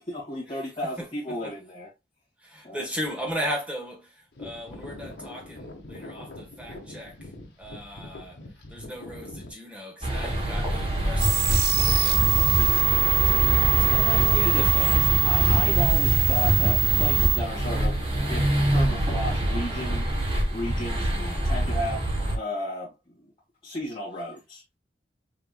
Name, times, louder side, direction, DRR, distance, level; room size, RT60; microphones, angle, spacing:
voice 1, 0.0-1.9 2.6-2.8 13.9-18.0 18.3-20.1 20.5-21.1 21.4-23.3 23.6-24.6, left 1 dB, 30° left, 1.6 m, -34 dB
voice 2, 2.4-7.3 7.6-8.4 8.7-13.9 14.3-14.7, equal, 5° right, 1.2 m, -37 dB
sound 1, 4.3-9.5, left 2 dB, 75° left, 1.2 m, -43 dB
sound 2, 10.0-22.4, right 1 dB, 30° right, 1.5 m, -25 dB
sound 3, 11.2-17.4, right 9 dB, 65° right, 0.7 m, -23 dB
5.7 x 3.0 x 2.2 m
head